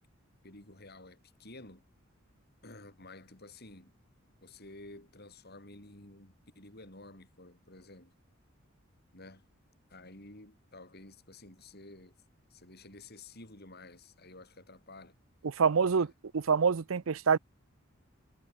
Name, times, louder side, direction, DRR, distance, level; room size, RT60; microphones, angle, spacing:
voice 1, 0.4-1.8 2.6-3.9 4.4-8.1 9.1-9.4 9.9-12.1 12.5-15.2 15.9-16.1, left 2 dB, 50° left, 7.1 m, -52 dB
voice 2, 15.4-16.1 16.3-17.4, right 6 dB, 75° right, 0.6 m, -26 dB
head